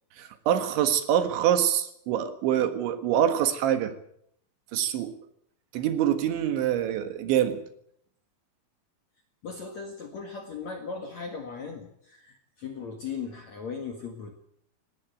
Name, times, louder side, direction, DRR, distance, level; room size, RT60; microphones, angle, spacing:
voice 1, 0.2-3.9 4.7-5.1 5.7-7.6, right 10 dB, 70° right, 9 dB, 3.8 m, -25 dB
voice 2, 9.4-14.4, left 5 dB, 55° left, 4 dB, 2.1 m, -38 dB
18.5 x 18.0 x 9.1 m, 0.69 s
omnidirectional pair, 5.7 m